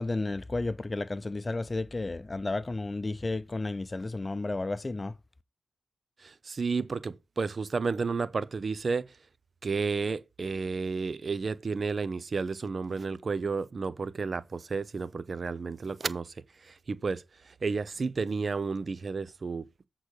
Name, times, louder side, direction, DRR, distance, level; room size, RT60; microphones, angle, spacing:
voice 1, 0.0-5.1, left 2 dB, 35° left, 0.6 m, -32 dB
voice 2, 6.2-9.1 9.6-16.3 16.6-19.9, right 4 dB, 55° right, 0.7 m, -32 dB
8.0 x 3.9 x 6.5 m
cardioid pair, 55°, 0 cm